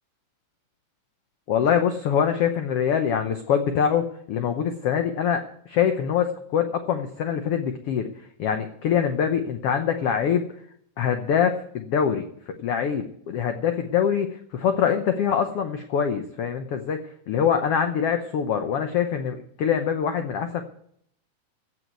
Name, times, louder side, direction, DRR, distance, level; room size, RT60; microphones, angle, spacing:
voice 1, 1.5-8.1 8.4-10.4 11.0-17.0 17.3-20.6, left 8 dB, 85° left, 6 dB, 1.3 m, -24 dB
15.5 x 6.2 x 9.2 m, 0.67 s
omnidirectional pair, 3.9 m